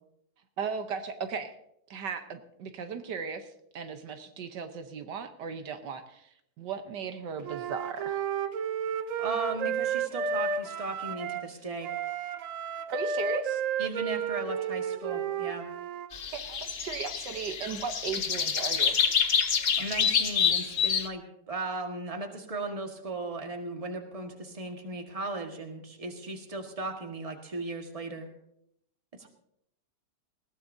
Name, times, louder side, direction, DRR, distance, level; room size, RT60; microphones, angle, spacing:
voice 1, 0.6-1.5 1.9-6.3 6.6-8.2 12.9-13.6 16.3-19.0, right 6 dB, 80° right, 8 dB, 1.6 m, -36 dB
Wind instrument woodwind instrument, 7.4-11.5 11.8-16.1, right 6 dB, 60° right, 1.0 m, -32 dB
voice 2, 9.2-11.9 13.8-15.7 19.8-28.3, right 2 dB, 20° right, 3 dB, 1.6 m, -36 dB
sound 1, 16.1-21.1, left 6 dB, 45° left, 0.8 m, -27 dB
20.0 x 17.0 x 2.7 m, 0.76 s
omnidirectional pair, 1.9 m